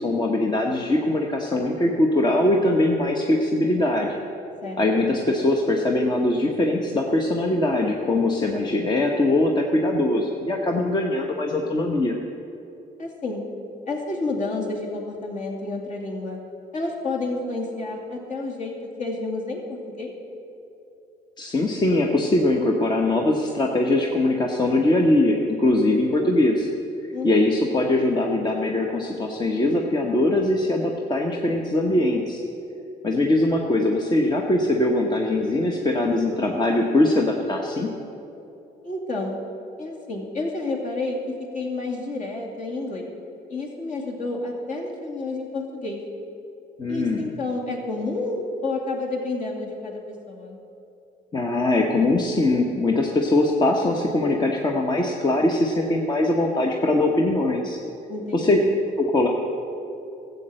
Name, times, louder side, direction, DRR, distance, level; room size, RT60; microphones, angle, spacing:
voice 1, 0.0-4.1 4.8-12.2 21.4-26.7 27.2-32.4 33.0-37.9 46.8-47.3 51.3-57.8 58.3-58.6 59.0-59.3, left 2 dB, 25° left, 1 dB, 1.0 m, -21 dB
voice 2, 4.6-5.1 13.0-13.4 13.9-16.4 16.7-20.1 27.1-27.6 38.8-39.4 39.8-43.1 43.5-46.0 46.9-50.0 50.3-50.6 58.1-58.8, left 2 dB, 45° left, 0 dB, 2.6 m, -30 dB
13.5 x 8.0 x 7.6 m, 2.8 s
cardioid pair, 110°, 17 cm